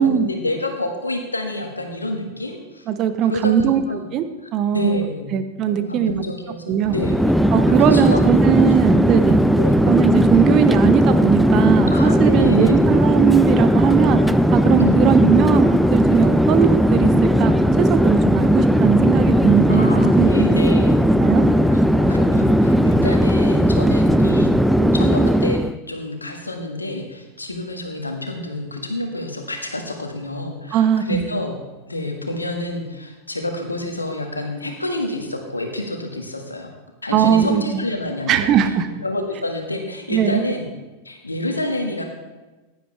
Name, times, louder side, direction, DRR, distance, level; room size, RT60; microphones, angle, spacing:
voice 1, 0.0-2.8 3.2-4.1 4.7-5.3 5.7-7.2 7.8-8.6 9.2-9.8 11.9-12.9 14.8-15.1 19.7-21.0 21.7-24.5 24.8-25.6 25.9-31.5 31.9-36.7 37.0-38.5 39.0-40.7 41.0-42.0, left 1 dB, 80° left, 4 dB, 1.6 m, -28 dB
voice 2, 2.9-4.2 4.5-5.0 5.3-6.2 6.7-6.9 7.5-9.4 9.9-14.2 14.5-17.5 17.8-20.3 21.2-21.4 30.7-31.3 37.1-37.8 38.3-38.9 40.1-40.4, right 8 dB, 35° right, 10 dB, 0.9 m, -19 dB
Chatter / Fixed-wing aircraft airplane, 6.8-25.8, equal, ahead, 0.4 m, -16 dB
15.5 x 10.5 x 3.4 m, 1.2 s
figure-of-eight pair, 90°, 0 cm